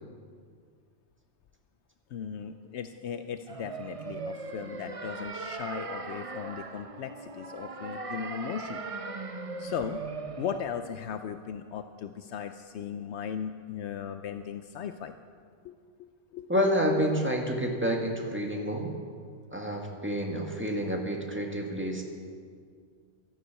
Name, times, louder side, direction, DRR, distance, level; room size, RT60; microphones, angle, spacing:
voice 1, 2.1-8.8 9.6-10.0 10.4-15.2 15.6-16.5, left 8 dB, 80° left, 9 dB, 0.9 m, -37 dB
sound 1, 3.5-10.6, right 3 dB, 35° right, 0.8 m, -39 dB
voice 2, 16.5-18.9 19.5-22.0, equal, 10° right, 1 dB, 1.8 m, -29 dB
13.0 x 12.0 x 8.2 m, 2.1 s
omnidirectional pair, 1.2 m